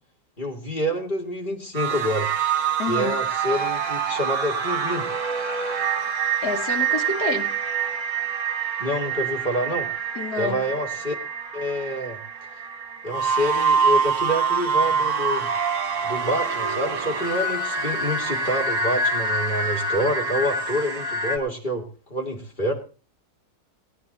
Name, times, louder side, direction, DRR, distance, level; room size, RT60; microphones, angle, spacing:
voice 1, 0.4-2.3 2.9-5.1 8.8-9.9 10.4-11.1 11.5-12.2 13.0-15.5 16.0-22.7, equal, 30° left, 2.8 m, -27 dB
sound 1, 1.7-21.4, right 5 dB, 55° right, 1.6 m, -26 dB
voice 2, 2.8-3.2 6.4-7.6 10.1-10.7, left 4 dB, 80° left, 1.7 m, -28 dB
18.0 x 9.6 x 4.2 m
omnidirectional pair, 1.6 m